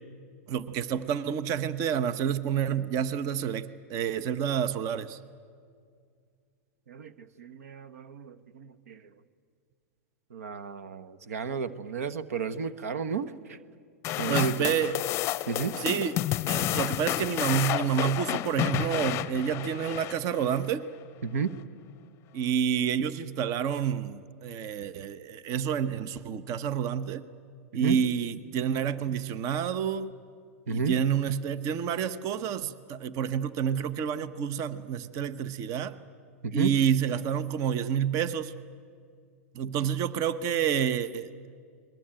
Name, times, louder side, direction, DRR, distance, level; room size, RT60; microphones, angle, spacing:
voice 1, 0.5-5.2 14.3-14.9 15.7-16.1 16.5-20.8 22.3-27.2 27.7-30.1 30.7-36.0 36.5-38.5 39.5-41.3, right 8 dB, 45° right, 14 dB, 1.0 m, -29 dB
voice 2, 6.9-9.1 10.3-13.6 14.2-14.7 15.5-15.7 21.2-21.5 27.7-28.0 30.7-31.0 36.4-36.7, right 5 dB, 85° right, 16 dB, 1.2 m, -32 dB
sound 1, 14.0-20.6, left 15 dB, 40° left, 0.6 m, -30 dB
29.5 x 21.5 x 9.0 m, 2.2 s
hypercardioid pair, 120°, 8 cm